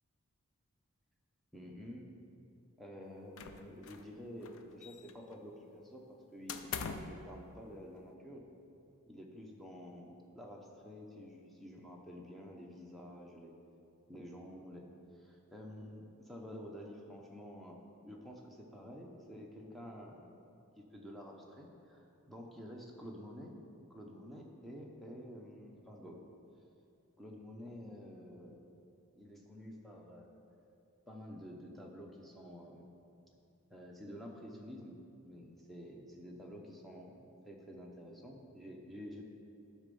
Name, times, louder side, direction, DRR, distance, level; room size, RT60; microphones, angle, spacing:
voice 1, 1.5-2.1 2.8-8.4 9.1-13.5 14.1-14.9 15.2-20.3 20.8-23.6 23.9-26.2 27.2-28.5 29.2-30.3 31.1-32.9 33.7-39.2, equal, ahead, -1 dB, 0.8 m, -50 dB
sound 1, 3.4-4.1 4.4-5.3 6.5-7.2, left 6 dB, 60° left, 0.5 m, -43 dB
12.0 x 4.2 x 5.4 m, 2.6 s
head